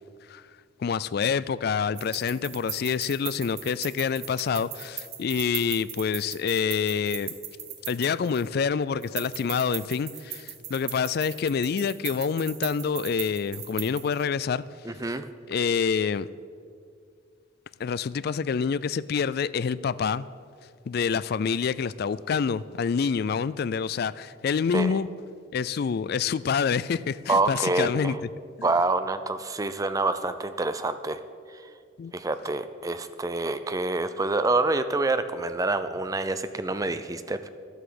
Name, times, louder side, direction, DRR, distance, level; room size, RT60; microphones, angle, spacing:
voice 1, 0.8-7.3 7.9-14.6 15.5-16.3 17.8-20.3 20.9-25.1 25.5-28.2 32.0-32.1, left 6 dB, 50° left, 18 dB, 0.3 m, -27 dB
sound 1, 2.0-8.6 9.0-14.2, right 10 dB, 50° right, 1.2 m, -38 dB
voice 2, 14.8-15.3 24.7-25.0 27.3-28.2 28.6-31.2 31.5-31.7 32.1-37.5, right 2 dB, 15° right, 11 dB, 0.5 m, -27 dB
12.0 x 8.2 x 7.7 m, 2.3 s
head